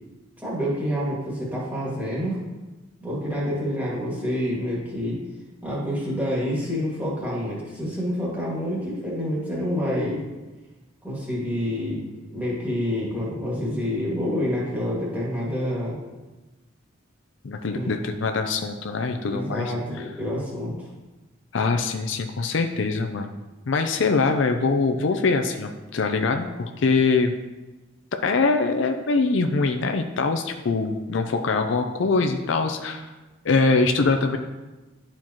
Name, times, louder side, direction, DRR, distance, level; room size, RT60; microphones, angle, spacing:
voice 1, 0.4-2.4 3.0-5.2 5.6-10.2 11.0-12.0 12.3-16.0 17.7-18.0 19.2-20.9, equal, 10° right, -6 dB, 1.9 m, -27 dB
voice 2, 17.4-19.7 21.5-23.3 23.7-27.3 28.2-33.1 33.4-34.4, left 4 dB, 65° left, 5 dB, 0.5 m, -23 dB
10.5 x 4.4 x 2.9 m, 1.2 s
head